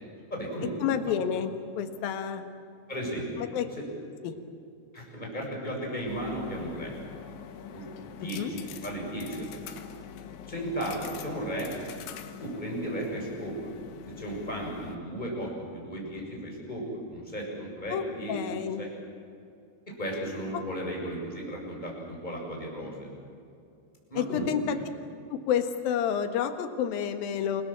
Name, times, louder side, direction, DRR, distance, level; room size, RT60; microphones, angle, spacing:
voice 1, 0.3-0.7 2.9-3.5 3.8-3.9 4.9-6.9 7.7-7.8 8.1-9.6 10.5-11.7 12.4-13.7 14.2-16.8 17.1-18.4 18.8-18.9 19.9-23.1 24.1-24.8, right 1 dB, 10° left, -2 dB, 7.0 m, -35 dB
voice 2, 0.8-1.5 1.8-2.4 3.4-3.7 4.2-4.4 8.4-8.5 17.9-18.0 18.3-18.8 24.1-24.8 25.3-27.6, left 8 dB, 60° left, 8 dB, 2.9 m, -29 dB
sound 1, 6.1-15.0, left 8 dB, 80° left, 3.9 m, -44 dB
29.0 x 21.5 x 7.6 m, 2.6 s
omnidirectional pair, 5.4 m